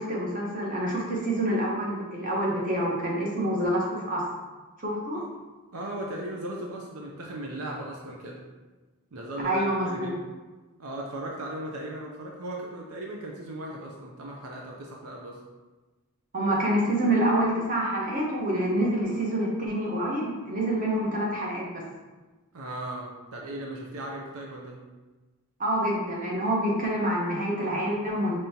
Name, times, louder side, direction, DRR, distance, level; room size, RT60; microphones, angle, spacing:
voice 1, 0.0-4.2 4.8-5.2 9.4-10.1 16.3-21.7 25.6-28.4, right 1 dB, 40° right, -4 dB, 1.0 m, -27 dB
voice 2, 5.7-8.4 9.1-10.2 10.8-15.4 22.5-24.8, right 1 dB, 75° right, -1 dB, 0.6 m, -37 dB
5.3 x 3.4 x 2.8 m, 1.2 s
head